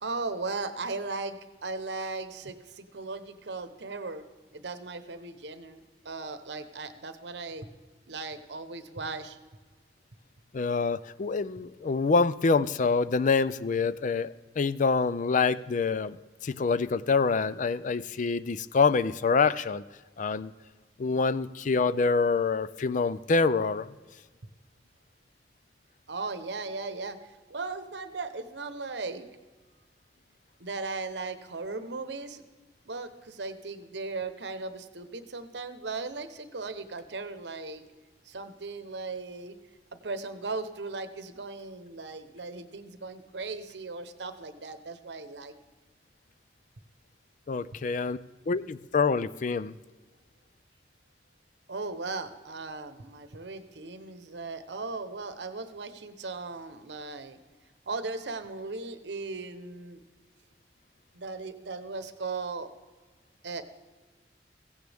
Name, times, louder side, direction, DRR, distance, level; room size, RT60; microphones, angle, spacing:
voice 1, 0.0-4.3 4.5-7.7 8.1-9.4 26.1-27.2 27.5-29.3 30.6-32.4 32.9-37.8 38.3-39.6 39.9-45.5 51.7-57.4 57.9-60.0 61.1-62.7 63.4-63.6, right 3 dB, 75° right, 10 dB, 1.0 m, -37 dB
voice 2, 10.5-16.2 16.4-19.8 20.2-20.5 21.0-23.9 47.5-48.2 48.5-49.7, left 4 dB, 45° left, 16 dB, 0.4 m, -26 dB
16.0 x 15.5 x 3.5 m, 1.3 s
head